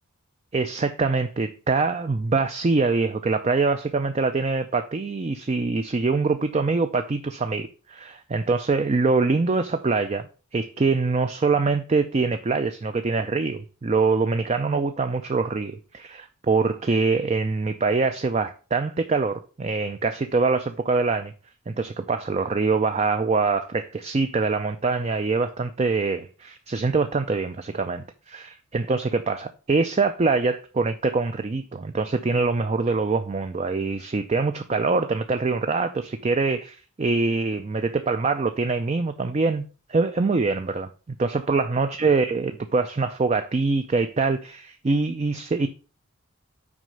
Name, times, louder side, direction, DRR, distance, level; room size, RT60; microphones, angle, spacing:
voice 1, 0.5-21.3 21.7-45.7, right 4 dB, 30° right, 0.4 m, -24 dB
6.2 x 4.7 x 5.4 m
head